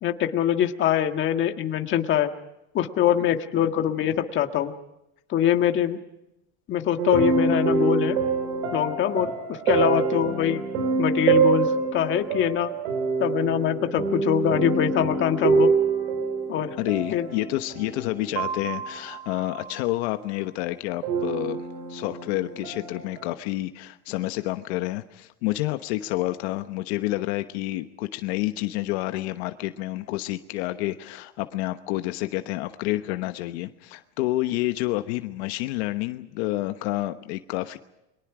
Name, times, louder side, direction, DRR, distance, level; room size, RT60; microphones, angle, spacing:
voice 1, 0.0-2.3 2.7-4.7 5.3-6.0 6.7-8.2 8.7-10.6 11.0-12.7 13.2-15.7 16.5-16.8 17.1-17.3, left 10 dB, 35° left, 6 dB, 1.6 m, -23 dB
sound 1, 7.0-19.7 21.0-23.3, right 5 dB, 85° right, 5.3 m, -26 dB
voice 2, 16.8-21.6 21.9-37.8, left 17 dB, 75° left, 9 dB, 1.2 m, -29 dB
30.0 x 23.0 x 5.0 m, 0.88 s
supercardioid pair, 150°, 33 cm